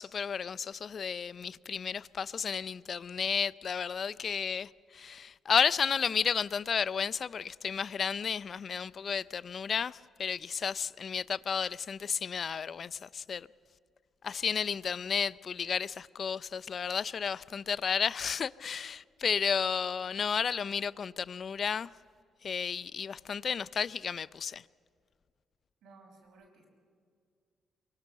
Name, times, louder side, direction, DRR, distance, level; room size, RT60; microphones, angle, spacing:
voice 1, 0.0-13.5 14.2-21.9 22.4-24.7, left 6 dB, 50° left, 0.5 m, -32 dB
voice 2, 25.8-26.7, right 3 dB, 80° right, 5.7 m, -57 dB
23.5 x 23.0 x 6.7 m
cardioid pair, 90°, 0 cm